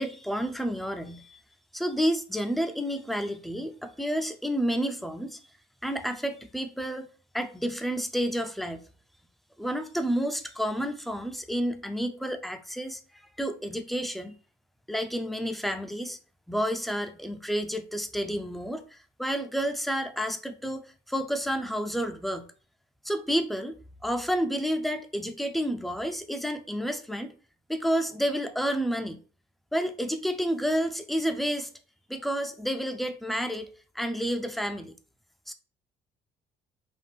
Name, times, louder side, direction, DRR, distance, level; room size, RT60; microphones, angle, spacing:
voice 1, 0.0-1.4 1.7-5.4 5.8-7.1 7.3-8.8 9.6-13.0 13.4-14.3 14.9-16.2 16.5-22.5 23.0-23.7 24.0-27.3 27.7-29.2 29.7-31.7 32.1-33.7 33.9-34.9 35.5-35.6, equal, ahead, 0.5 m, -30 dB
3.5 x 2.5 x 4.0 m
cardioid pair, 110°, 17 cm